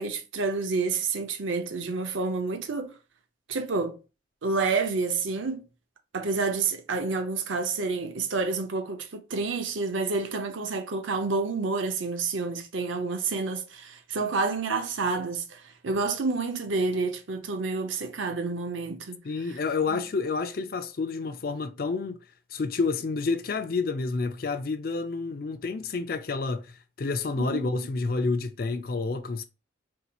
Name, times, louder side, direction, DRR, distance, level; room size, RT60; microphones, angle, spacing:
voice 1, 0.0-2.9 3.5-4.0 4.4-5.6 6.1-19.2 19.9-20.0 27.4-27.7, right 4 dB, 85° right, 0.7 m, -29 dB
voice 2, 19.2-22.2 22.5-29.4, left 4 dB, 50° left, 0.4 m, -29 dB
4.0 x 2.7 x 2.3 m
head